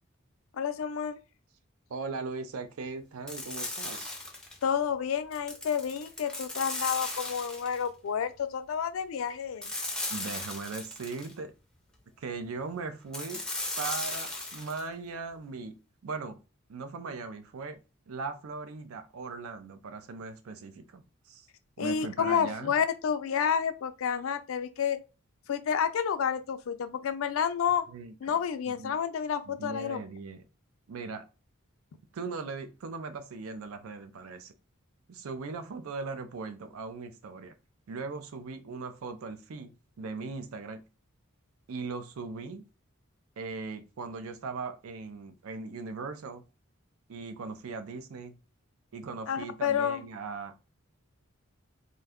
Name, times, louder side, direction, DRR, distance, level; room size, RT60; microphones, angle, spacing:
voice 1, 0.5-1.2 4.6-9.7 21.8-25.0 25.5-27.8 28.2-30.0 49.3-50.0, left 7 dB, 70° left, 0.4 m, -30 dB
voice 2, 1.9-4.2 10.1-11.5 12.2-13.4 13.8-16.4 16.7-17.8 18.1-21.5 21.8-22.8 27.9-28.4 28.7-29.0 29.5-30.4 30.9-31.2 32.1-34.5 35.1-37.5 37.9-40.8 41.7-42.6 43.4-46.4 47.1-48.4 48.9-50.6, right 4 dB, 80° right, 0.4 m, -39 dB
sound 1, 3.3-4.6 5.3-7.9 9.6-11.3 13.1-14.8, left 2 dB, 5° left, 0.5 m, -36 dB
2.6 x 2.2 x 3.5 m
head